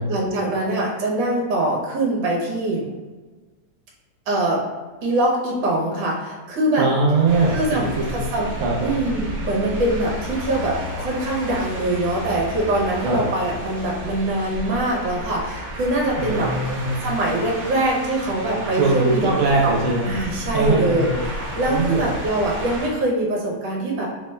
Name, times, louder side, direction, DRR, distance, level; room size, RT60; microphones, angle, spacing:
voice 1, 0.1-2.9 4.3-4.6 5.0-6.9 7.5-8.5 8.8-16.5 17.0-19.3 19.6-19.7 20.1-21.1 21.6-24.1, right 1 dB, 65° right, -3 dB, 1.4 m, -23 dB
voice 2, 6.8-8.1 8.6-8.9 13.0-13.2 16.2-17.0 18.7-20.1 20.5-21.2 21.7-22.1, right 3 dB, 80° right, -2 dB, 1.4 m, -21 dB
sound 1, 7.3-22.9, equal, 40° right, 1.4 m, -32 dB
4.2 x 2.2 x 3.1 m, 1.3 s
omnidirectional pair, 2.3 m